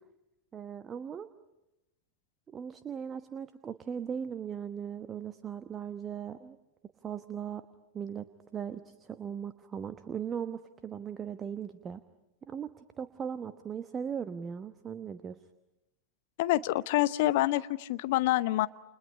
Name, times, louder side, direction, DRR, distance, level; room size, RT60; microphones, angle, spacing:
voice 1, 0.5-1.3 2.5-6.6 7.0-7.6 7.9-8.3 8.5-12.0 12.4-12.7 13.0-15.4, right 7 dB, 20° right, 10 dB, 1.1 m, -38 dB
voice 2, 16.4-18.7, left 16 dB, 50° left, 15 dB, 0.8 m, -27 dB
29.5 x 29.0 x 5.5 m, 0.92 s
figure-of-eight pair, 90°, 0 cm